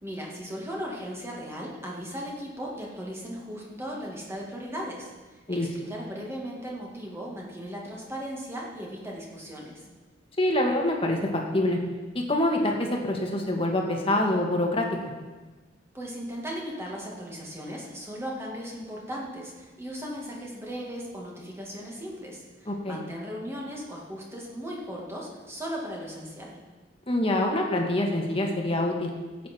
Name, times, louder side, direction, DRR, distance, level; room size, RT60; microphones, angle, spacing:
voice 1, 0.0-9.8 15.9-26.6, equal, 15° right, -3 dB, 2.4 m, -37 dB
voice 2, 10.4-11.8 12.1-14.9 22.7-23.0 27.1-29.1, left 1 dB, 30° left, 1 dB, 1.9 m, -25 dB
16.0 x 8.3 x 4.6 m, 1.3 s
head